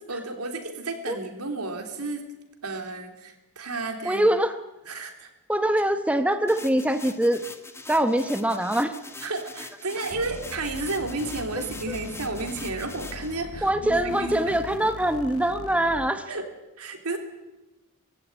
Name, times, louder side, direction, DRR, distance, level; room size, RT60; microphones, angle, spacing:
voice 1, 0.0-2.3 2.6-4.2 4.8-5.3 9.2-14.6 16.3-16.5 16.8-17.2, right 3 dB, 80° right, 5 dB, 3.4 m, -32 dB
voice 2, 4.0-4.6 5.5-7.4 7.9-8.9 13.6-16.2, right 1 dB, 5° right, 8 dB, 1.0 m, -23 dB
sound 1, 6.5-13.3, left 3 dB, 10° left, 1.4 m, -43 dB
sound 2, 10.1-16.1, left 2 dB, 65° left, 0.9 m, -41 dB
20.0 x 16.0 x 9.8 m, 1.0 s
head